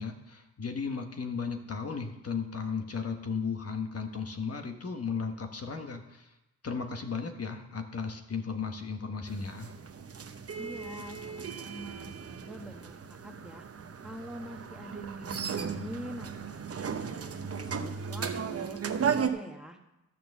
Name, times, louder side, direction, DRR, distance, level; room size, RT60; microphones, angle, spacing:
voice 1, 0.0-6.3 6.6-9.7, left 5 dB, 50° left, 5 dB, 1.2 m, -35 dB
sound 1, 9.3-19.3, right 6 dB, 50° right, 0.9 m, -36 dB
voice 2, 10.6-13.6 14.0-19.8, equal, ahead, 4 dB, 1.3 m, -45 dB
11.0 x 6.0 x 7.3 m, 0.95 s
cardioid pair, 65°, 31 cm